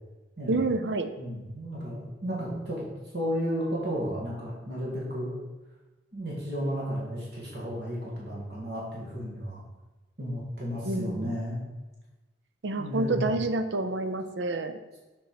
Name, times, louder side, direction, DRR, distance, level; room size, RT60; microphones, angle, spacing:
voice 1, 0.5-1.1 2.2-2.6 10.9-11.3 12.6-14.8, right 2 dB, 85° right, 9 dB, 0.6 m, -29 dB
voice 2, 1.2-2.9 3.1-5.4 6.1-9.6 10.2-11.6 12.8-13.3, equal, 60° right, -5 dB, 2.4 m, -33 dB
7.9 x 4.6 x 4.9 m, 1.2 s
head